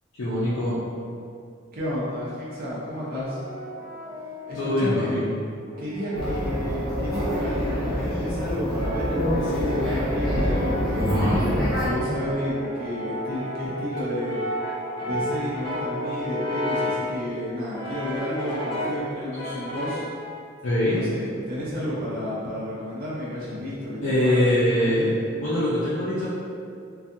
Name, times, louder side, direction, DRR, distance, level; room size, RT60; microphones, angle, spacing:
voice 1, 0.2-0.7 4.5-5.2 11.1-11.4 19.4-19.6 20.6-21.0 24.0-25.0 25.4-26.3, left 1 dB, 75° left, -11 dB, 0.5 m, -23 dB
voice 2, 1.7-3.4 4.5-5.1 5.8-11.2 11.8-14.4 15.0-20.1 20.9-25.1, equal, 50° right, -8 dB, 0.6 m, -31 dB
Brass instrument, 3.0-5.0 5.7-7.8 8.4-17.1 17.7-19.1 19.4-20.2, equal, 30° left, 0.6 m, -33 dB
sound 1, 6.1-11.9, equal, ahead, 0.9 m, -26 dB
2.6 x 2.3 x 2.5 m, 2.4 s
head